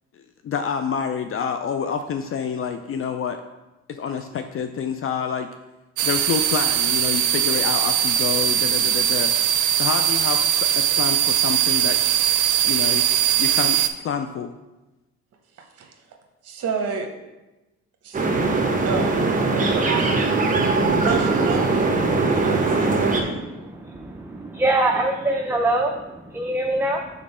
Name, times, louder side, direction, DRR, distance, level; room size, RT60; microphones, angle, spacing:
voice 1, 0.1-3.4 3.9-5.5 6.0-9.3 9.7-12.0 12.6-13.1 13.4-14.5, left 6 dB, 45° left, 7 dB, 0.4 m, -28 dB
sound 1, 6.0-13.9, right 11 dB, 80° right, 0.5 m, -20 dB
voice 2, 15.6-15.9 16.4-17.1 18.0-18.3 18.9-19.9 21.0-21.7 22.3-23.4, right 5 dB, 55° right, 3 dB, 0.9 m, -30 dB
sound 2, 18.1-23.2, right 3 dB, 25° right, 0.9 m, -21 dB
voice 3, 23.8-27.1, right 2 dB, 10° right, 2 dB, 0.5 m, -24 dB
5.2 x 4.0 x 5.5 m, 1.1 s
cardioid pair, 90°, 30 cm